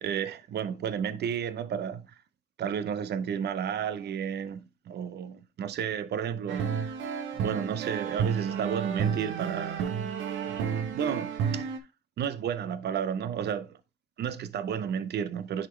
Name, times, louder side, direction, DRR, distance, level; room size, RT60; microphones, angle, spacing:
voice 1, 0.0-2.1 2.6-6.8 7.3-9.9 10.5-11.7 12.2-13.8 14.2-15.7, right 8 dB, 60° right, 0.7 m, -32 dB
sound 1, 6.5-11.8, right 7 dB, 90° right, 0.9 m, -31 dB
10.0 x 4.1 x 3.2 m
cardioid pair, 105°, 20 cm